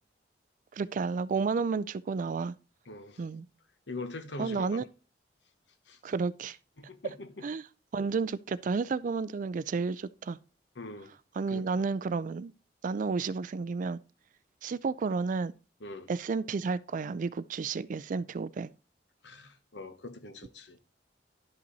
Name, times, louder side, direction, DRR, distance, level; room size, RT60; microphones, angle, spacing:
voice 1, 0.7-2.5 3.2-3.5 4.4-4.8 6.0-6.6 7.4-7.6 7.9-10.4 11.4-12.5 12.8-14.0 14.6-15.5 16.1-18.7, right 4 dB, 45° right, 0.3 m, -31 dB
voice 2, 2.9-3.2 3.9-4.8 5.9-6.1 6.8-7.4 10.7-11.1 11.5-11.8 15.8-16.1 19.2-20.8, left 2 dB, 70° left, 1.1 m, -43 dB
11.5 x 5.6 x 4.0 m
head